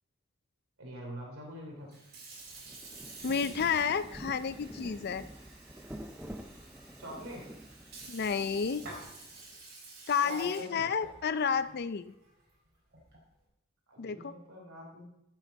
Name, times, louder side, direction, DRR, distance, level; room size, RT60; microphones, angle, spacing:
voice 1, 0.8-2.0 7.0-7.5 10.2-10.9 13.9-15.1, equal, 90° right, -1 dB, 3.0 m, -44 dB
Sink (filling or washing) / Fill (with liquid), 1.8-13.3, right 2 dB, 50° right, 4.7 m, -50 dB
Rain, 2.3-9.6, equal, 5° right, 0.5 m, -48 dB
voice 2, 3.2-5.2 8.1-8.9 10.1-12.1 14.0-14.3, left 6 dB, 50° left, 14 dB, 0.5 m, -31 dB
12.0 x 8.4 x 4.1 m, 0.84 s
head